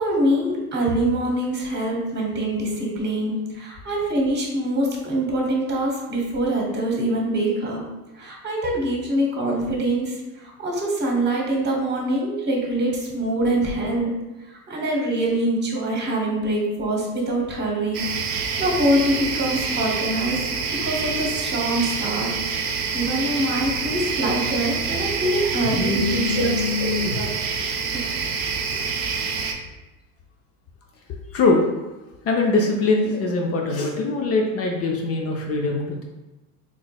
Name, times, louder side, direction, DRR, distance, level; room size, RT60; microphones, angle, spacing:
voice 1, 0.0-7.8 8.1-14.1 14.7-18.0 18.3-20.4 20.8-22.3 22.9-27.3, right 1 dB, 25° right, -1 dB, 1.1 m, -24 dB
sound 1, 17.9-29.5, right 5 dB, 75° right, 0.6 m, -27 dB
voice 2, 25.6-27.3 28.7-28.8 31.3-31.6 32.2-36.0, left 3 dB, 35° left, 1 dB, 0.5 m, -23 dB
3.8 x 3.0 x 2.3 m, 1.1 s
hypercardioid pair, 85°, 46 cm